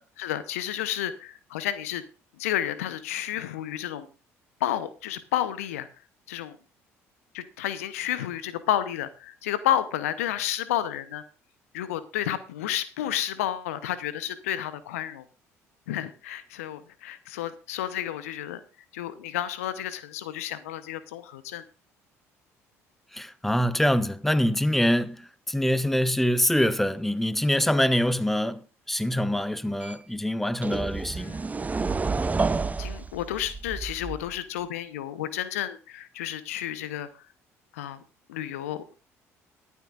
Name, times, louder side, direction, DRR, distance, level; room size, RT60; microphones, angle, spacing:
voice 1, 0.2-2.0 2.4-4.1 4.6-5.9 6.3-6.6 7.3-11.2 11.7-15.3 15.9-18.6 18.9-21.6 31.2-31.5 32.8-37.1 37.7-38.0 38.3-38.8, left 11 dB, 75° left, 0.8 m, -31 dB
voice 2, 23.1-31.4, equal, 5° left, 0.9 m, -25 dB
sound 1, 29.8-29.9 30.6-34.4, right 4 dB, 20° right, 0.6 m, -29 dB
23.0 x 8.3 x 2.5 m
figure-of-eight pair, 55°, 8 cm